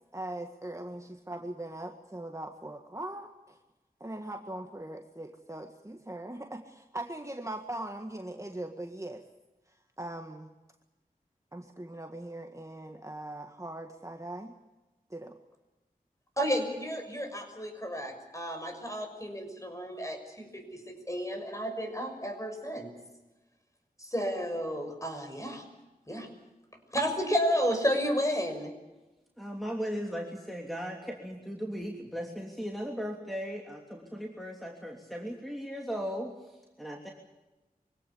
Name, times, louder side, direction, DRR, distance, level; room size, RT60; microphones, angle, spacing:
voice 1, 0.1-3.6 4.0-9.2 9.7-10.5 11.5-14.6 15.1-15.4, right 1 dB, 20° right, 4 dB, 1.8 m, -40 dB
voice 2, 16.4-22.9 24.0-25.7 26.1-26.3 26.9-28.7, equal, 20° left, 5 dB, 6.4 m, -32 dB
voice 3, 29.4-37.1, equal, ahead, 0 dB, 3.1 m, -37 dB
24.5 x 17.5 x 8.6 m, 1.1 s
wide cardioid pair, 50°, 16 cm